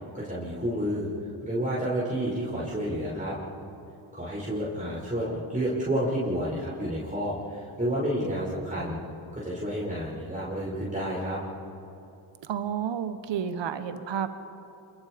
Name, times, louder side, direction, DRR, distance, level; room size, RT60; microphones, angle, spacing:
voice 1, 0.1-1.1 1.4-3.4 4.1-9.0 9.3-11.4, equal, 15° right, -7 dB, 7.0 m, -30 dB
voice 2, 12.4-14.5, right 8 dB, 65° right, 10 dB, 1.3 m, -31 dB
28.0 x 22.0 x 5.2 m, 2.9 s
supercardioid pair, 50°, 47 cm